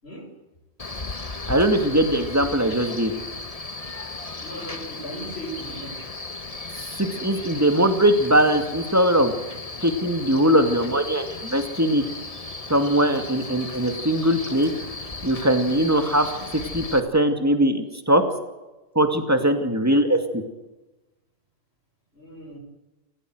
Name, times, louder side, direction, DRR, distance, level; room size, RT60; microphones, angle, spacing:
Male speech man speaking, 0.8-17.0, left 3 dB, 35° left, 1.6 m, -36 dB
voice 1, 1.5-3.1 7.0-9.3 9.8-12.0 12.7-14.7 15.2-18.2 18.9-20.4, right 1 dB, 15° right, 6 dB, 2.4 m, -21 dB
voice 2, 4.4-5.9 22.1-22.6, right 1 dB, 70° left, 3 dB, 6.0 m, -37 dB
28.5 x 15.0 x 8.0 m, 1.1 s
omnidirectional pair, 1.1 m